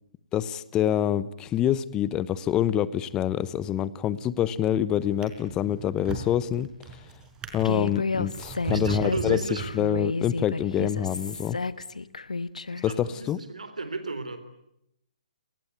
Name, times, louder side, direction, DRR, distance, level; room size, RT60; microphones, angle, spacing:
voice 1, 0.3-6.7 7.5-9.4 9.7-11.6 12.8-13.4, left 10 dB, 20° left, 17 dB, 1.0 m, -26 dB
Drawer open or close, 4.0-4.5 5.0-10.2 10.9-11.1, right 4 dB, 15° right, 5.1 m, -38 dB
Human voice, 7.6-12.9, left 3 dB, 85° left, 1.2 m, -31 dB
voice 2, 8.7-9.8 12.7-14.4, right 3 dB, 85° right, 11 dB, 3.6 m, -34 dB
29.5 x 20.0 x 9.3 m, 0.81 s
hypercardioid pair, 140°, 4 cm